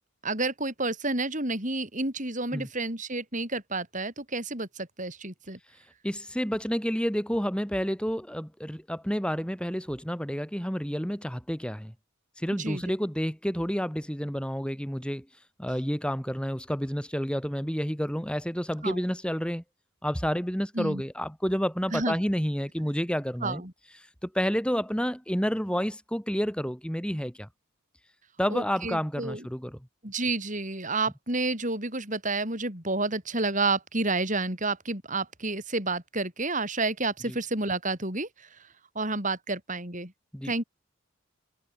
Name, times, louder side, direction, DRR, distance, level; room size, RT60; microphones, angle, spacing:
voice 1, 0.2-5.6 12.5-12.8 18.8-19.0 20.8-21.0 21.9-22.2 23.4-23.7 28.5-29.5 30.0-38.7 39.0-40.1 40.4-40.6, right 3 dB, 35° right, 7.0 m, -30 dB
voice 2, 6.0-11.9 12.4-15.2 15.6-19.6 20.0-23.6 24.2-27.5 28.4-29.8 37.3-37.4 40.3-40.5, equal, 5° left, 6.4 m, -30 dB
head